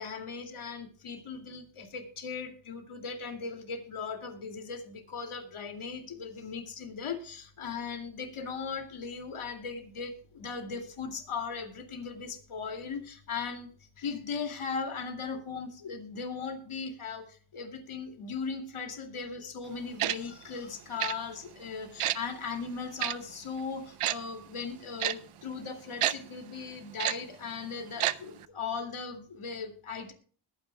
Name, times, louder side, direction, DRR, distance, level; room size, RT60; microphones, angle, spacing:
voice 1, 0.0-30.1, left 5 dB, 80° left, 4 dB, 2.5 m, -38 dB
Tick-tock, 20.0-20.2 21.0-21.1 22.0-22.2 23.0-23.1 24.0-24.2 25.0-25.1 26.0-26.1 27.0-27.1 28.0-28.1 28.4-28.5, right 13 dB, 90° right, 0.6 m, -28 dB
20.5 x 10.0 x 2.3 m, 0.43 s
cardioid pair, 55°, 49 cm